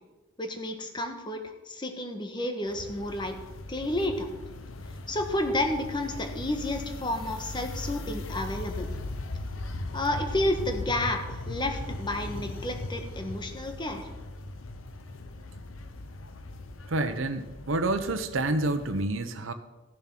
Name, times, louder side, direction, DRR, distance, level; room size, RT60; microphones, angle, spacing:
voice 1, 0.4-1.4 1.7-3.3 3.7-4.3 5.1-8.9 9.9-14.1, left 1 dB, 25° left, 4 dB, 1.3 m, -31 dB
sound 1, 2.7-19.0, left 2 dB, 90° left, 0.9 m, -39 dB
voice 2, 16.9-19.5, right 2 dB, 85° right, 7 dB, 0.9 m, -28 dB
15.0 x 7.3 x 6.0 m, 1.1 s
head